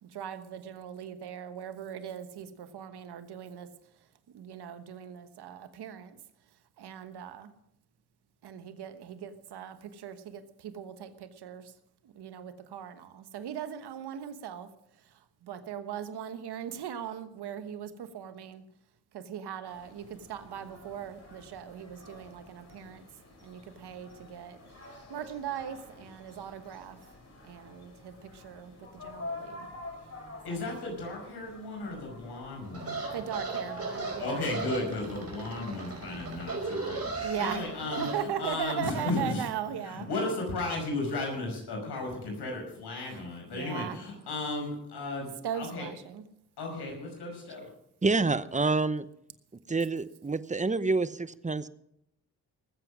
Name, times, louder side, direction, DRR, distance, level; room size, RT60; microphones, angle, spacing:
voice 1, 0.0-3.7 4.3-6.1 6.8-7.5 8.4-11.7 12.2-14.7 15.4-18.6 19.1-23.0 23.4-24.6 25.1-27.0 27.4-28.7 29.0-29.7 30.5-30.6 33.1-34.4 37.2-40.1 43.1-43.2 43.5-44.0 45.4-46.2, right 9 dB, 80° right, 10 dB, 1.3 m, -39 dB
sound 1, 19.7-38.9, left 2 dB, 40° left, 6.0 m, -48 dB
voice 2, 30.4-33.1 34.2-38.1 38.4-39.4 39.8-45.9 46.6-47.7, left 2 dB, 80° left, 1 dB, 5.7 m, -35 dB
sound 2, 32.7-38.2, right 3 dB, 40° right, 4.6 m, -36 dB
voice 3, 48.0-49.1 49.7-51.7, right 3 dB, 20° right, 15 dB, 0.8 m, -27 dB
19.0 x 7.9 x 6.3 m, 0.78 s
cardioid pair, 60°, 39 cm